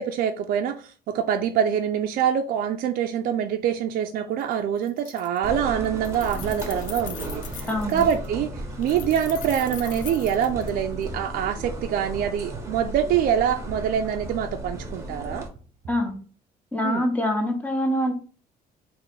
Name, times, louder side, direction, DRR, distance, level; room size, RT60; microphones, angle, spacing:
voice 1, 0.0-8.5 8.8-15.5 16.8-17.0, right 9 dB, 60° right, 0.4 m, -25 dB
Keys jangling, 4.4-4.5 4.8-5.6 5.8-8.3 8.8-11.1, left 9 dB, 50° left, 0.5 m, -41 dB
sound 1, 5.4-15.5, right 1 dB, 15° right, 0.9 m, -35 dB
sound 2, 6.4-12.8 13.1-16.1, right 3 dB, 45° right, 0.8 m, -42 dB
voice 2, 7.7-8.0 15.9-16.1 16.7-18.1, left 1 dB, 10° left, 0.9 m, -25 dB
3.2 x 2.6 x 3.7 m
cardioid pair, 110°, 17 cm